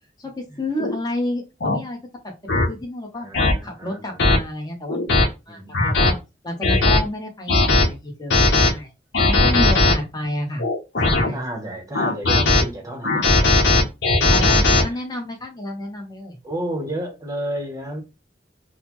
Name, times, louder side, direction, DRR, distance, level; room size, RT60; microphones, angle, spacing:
voice 1, 0.2-2.0 2.5-3.3 3.6-6.2 6.4-8.9 9.3-10.7 11.0-11.4 14.3-16.4, left 1 dB, 25° left, 0.9 m, -30 dB
sound 1, 0.8-1.0 1.6-1.8 2.5-2.7 3.3-3.5 4.2-4.4 4.9-5.3 5.7-6.1 6.6-7.0 7.5-7.9 8.3-8.7 9.1-9.9 10.6-11.3 11.9-12.6 13.0-14.8, left 2 dB, 70° left, 0.8 m, -17 dB
voice 2, 3.2-4.3 5.5-6.0 9.1-10.0 11.3-13.3 14.4-15.0 16.4-18.0, right 1 dB, 20° right, 0.8 m, -32 dB
3.8 x 2.1 x 2.9 m
head